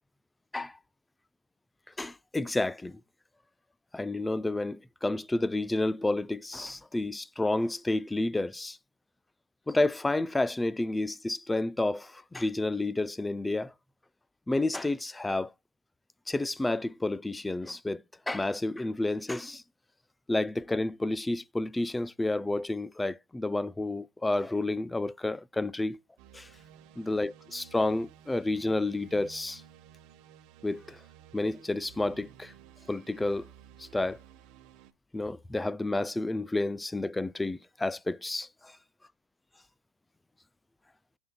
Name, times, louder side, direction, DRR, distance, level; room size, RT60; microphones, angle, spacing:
voice 1, 2.0-3.0 3.9-8.8 9.7-13.7 14.5-15.5 16.3-19.6 20.3-26.0 26.3-26.5 27.0-29.6 30.6-31.0 31.3-32.5 32.9-33.5 33.8-34.2 35.1-38.7, left 2 dB, 10° left, 0.4 m, -30 dB
sound 1, 26.2-34.9, right 10 dB, 55° right, 1.0 m, -54 dB
14.5 x 6.2 x 2.2 m
supercardioid pair, 115°, 0 cm